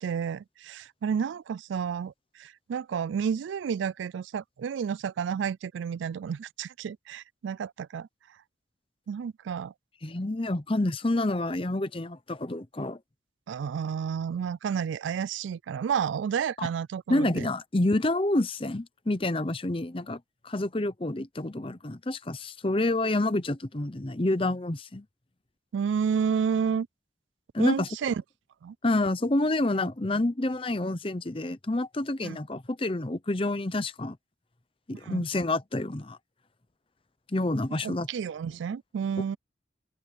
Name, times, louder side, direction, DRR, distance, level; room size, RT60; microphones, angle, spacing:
voice 1, 0.0-8.1 9.1-9.7 13.5-17.5 25.7-26.9 27.6-28.2 28.6-28.8 32.2-32.4 35.0-35.2 37.7-39.4, right 7 dB, 80° right, 0.3 m, -31 dB
voice 2, 10.0-13.0 16.6-16.7 17.1-25.0 27.5-27.9 28.8-34.2 34.9-36.2 37.3-38.1, left 2 dB, 30° left, 0.8 m, -28 dB
open air
head